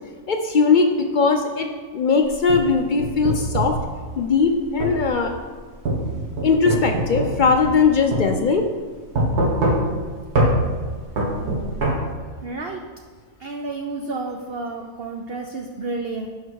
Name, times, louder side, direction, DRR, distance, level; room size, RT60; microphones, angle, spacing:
voice 1, 0.3-1.7 1.9-3.7 4.2-5.3 6.4-8.7, left 4 dB, 70° left, 4 dB, 0.4 m, -19 dB
sound 1, 2.2-3.8 4.8-5.0 5.9-7.8 8.1-8.3 9.2-10.0 10.4-10.5 11.2-11.9, right 1 dB, 75° right, 2.0 m, -22 dB
voice 2, 12.4-12.8 13.4-16.3, right 3 dB, 55° right, 3 dB, 0.7 m, -30 dB
11.5 x 5.1 x 4.6 m, 1.5 s
omnidirectional pair, 1.6 m